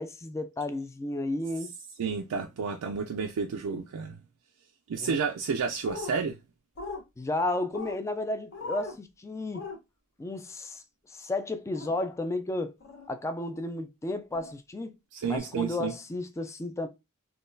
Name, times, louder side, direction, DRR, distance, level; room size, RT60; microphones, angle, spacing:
voice 1, 0.0-1.7 2.6-2.8 5.0-5.2 7.2-9.7 10.2-12.7 13.1-15.0 15.3-16.9, left 2 dB, 15° left, 0.3 m, -33 dB
voice 2, 2.0-4.2 4.9-6.4 15.1-15.9, right 5 dB, 80° right, 0.4 m, -31 dB
sound 1, 5.8-6.1 6.8-7.0 7.7-8.0 8.5-9.0 9.5-9.8 11.8-11.9 12.8-13.1 14.3-14.5 15.3-15.4, left 3 dB, 55° left, 0.9 m, -38 dB
3.7 x 2.3 x 2.6 m
head